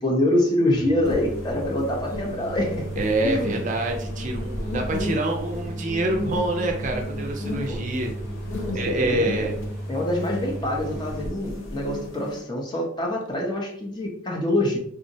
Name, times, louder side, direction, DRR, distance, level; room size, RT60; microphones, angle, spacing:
voice 1, 0.0-3.6 7.7-8.0 8.6-9.5 9.9-14.8, left 1 dB, 20° left, 0 dB, 0.5 m, -25 dB
sound 1, 0.7-11.3, right 1 dB, 15° right, 0.9 m, -35 dB
sound 2, 1.0-12.4, left 2 dB, 75° left, 0.6 m, -34 dB
voice 2, 3.0-8.1 8.7-9.6, right 2 dB, 40° right, 2 dB, 0.4 m, -26 dB
3.5 x 2.0 x 2.6 m, 0.68 s
head